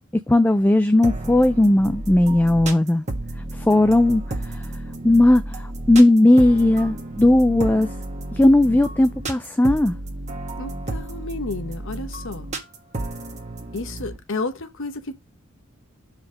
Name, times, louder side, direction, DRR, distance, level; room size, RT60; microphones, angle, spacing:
voice 1, 0.3-3.0 3.6-4.6 5.0-7.9 8.3-10.0, left 1 dB, 10° left, 0.3 m, -17 dB
sound 1, 1.0-14.2, right 2 dB, 35° right, 1.3 m, -32 dB
voice 2, 10.6-12.5 13.7-15.1, left 3 dB, 65° left, 1.0 m, -31 dB
5.3 x 4.9 x 5.2 m
head